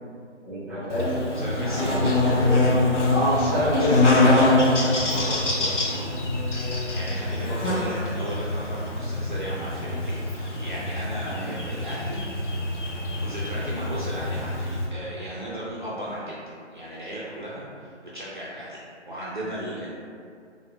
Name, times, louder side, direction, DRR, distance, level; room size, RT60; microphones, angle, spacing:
voice 1, 0.4-1.2 1.6-2.5 3.1-4.4 11.3-11.5, equal, 15° left, -17 dB, 0.9 m, -27 dB
Buzz, 0.9-14.9, left 2 dB, 75° left, 0.7 m, -24 dB
voice 2, 1.4-2.0 3.6-6.1 6.6-12.2 13.2-16.4 16.7-18.8 19.1-19.9, equal, 45° right, -8 dB, 0.4 m, -35 dB
3.7 x 2.1 x 2.2 m, 2.2 s
figure-of-eight pair, 155°, 37 cm